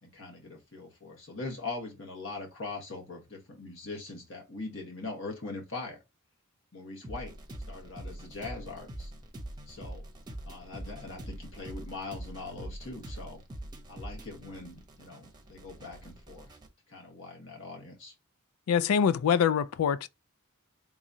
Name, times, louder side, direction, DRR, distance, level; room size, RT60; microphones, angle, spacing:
voice 1, 0.0-6.0 6.7-7.4 7.7-9.1 9.7-10.0 10.5-13.4 13.9-16.5 16.9-18.1, left 3 dB, 60° left, 1.4 m, -41 dB
sound 1, 7.0-16.7, right 1 dB, 20° right, 0.7 m, -44 dB
voice 2, 18.7-20.1, left 7 dB, 80° left, 0.3 m, -24 dB
3.6 x 3.0 x 2.6 m
head